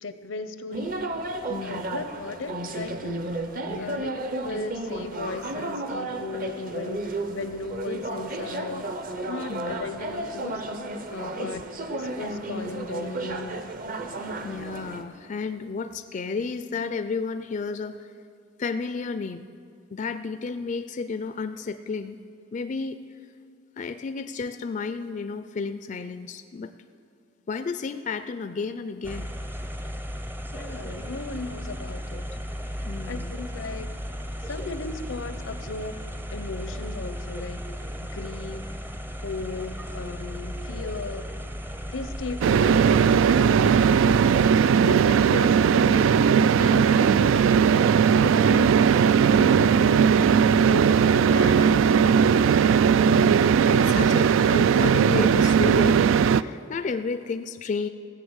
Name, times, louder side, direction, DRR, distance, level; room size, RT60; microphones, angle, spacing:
voice 1, 0.0-1.1 1.6-3.2 3.8-8.9 9.2-10.7 11.1-13.7 30.5-32.3 33.1-33.9 34.4-36.0 36.3-38.7 39.2-41.3 41.9-44.0 44.8-47.9 48.2-48.8 49.3-52.6, left 3 dB, 85° left, 11 dB, 0.7 m, -36 dB
sound 1, 0.7-15.0, right 2 dB, 45° right, 0.8 m, -33 dB
voice 2, 1.5-2.0 3.7-4.0 9.5-9.7 11.4-11.6 14.4-18.1 18.6-19.5 19.9-22.2 22.5-23.0 23.8-26.7 27.5-29.3 32.9-33.4 44.9-45.4 49.3-49.7 53.0-57.9, left 4 dB, 40° left, 11 dB, 0.4 m, -32 dB
sound 2, 29.0-44.5, equal, 10° right, 0.6 m, -35 dB
sound 3, 42.4-56.4, right 7 dB, 90° right, 0.3 m, -18 dB
16.0 x 7.0 x 8.0 m, 2.3 s
head